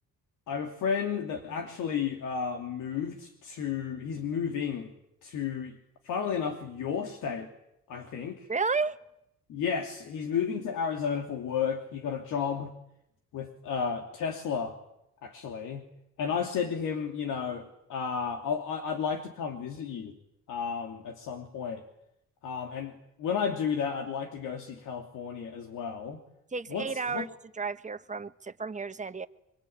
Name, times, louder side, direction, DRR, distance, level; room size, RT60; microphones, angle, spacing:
voice 1, 0.5-4.9 5.2-5.8 6.0-7.5 7.9-8.5 9.5-12.7 13.3-14.8 15.2-15.8 16.2-20.2 20.5-21.8 22.4-22.9 23.2-26.2 26.7-27.3, left 6 dB, 80° left, 3 dB, 2.8 m, -32 dB
voice 2, 8.5-9.0 26.5-27.3 27.5-29.3, right 4 dB, 25° right, 11 dB, 1.3 m, -32 dB
26.0 x 24.5 x 8.8 m, 0.82 s
cardioid pair, 90°, 30 cm